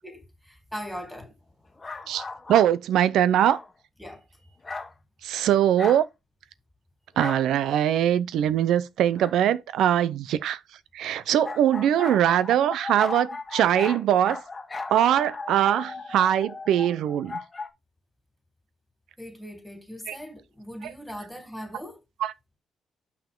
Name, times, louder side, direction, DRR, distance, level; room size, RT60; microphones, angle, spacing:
voice 1, 0.5-1.3 4.0-4.5 19.2-22.0, equal, ahead, 3.5 m, -39 dB
sound 1, 1.8-2.7 3.4-3.7 4.6-4.9 5.8-6.0 7.2-7.4 9.1-9.3 11.4-17.7, left 3 dB, 25° left, 1.3 m, -36 dB
voice 2, 2.5-3.6 5.2-6.1 7.2-10.6 10.9-14.4 14.9-17.4 20.1-20.2 20.8-20.9 22.2-22.3, right 10 dB, 80° right, 0.6 m, -22 dB
7.0 x 5.8 x 3.7 m
cardioid pair, 90°, 0 cm